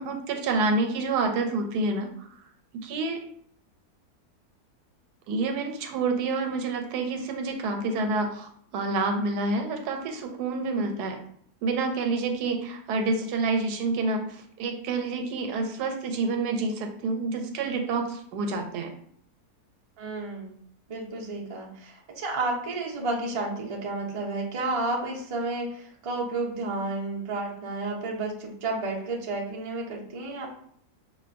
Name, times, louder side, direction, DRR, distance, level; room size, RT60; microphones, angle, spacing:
voice 1, 0.0-2.3 2.7-3.2 5.3-11.2 11.6-18.9, right 3 dB, 90° right, 5 dB, 1.2 m, -28 dB
voice 2, 20.0-20.6 20.9-30.5, right 2 dB, 50° right, -2 dB, 0.4 m, -31 dB
5.4 x 2.2 x 2.5 m, 0.63 s
omnidirectional pair, 1.7 m